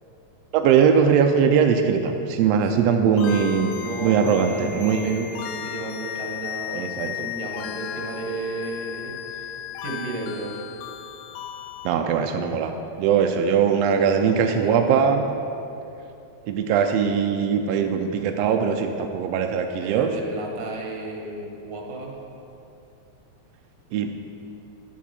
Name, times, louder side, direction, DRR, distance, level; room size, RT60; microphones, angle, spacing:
voice 1, 0.5-3.7 4.0-5.3 6.7-7.1 11.8-12.7 13.0-15.3 16.4-20.1 23.9-24.1, right 7 dB, 80° right, 5 dB, 1.5 m, -21 dB
sound 1, 3.2-11.9, left 9 dB, 85° left, 2.0 m, -35 dB
voice 2, 3.8-10.6 13.8-14.8 19.7-22.1, right 2 dB, 65° right, -1 dB, 2.3 m, -34 dB
11.0 x 7.4 x 4.2 m, 2.8 s
omnidirectional pair, 3.3 m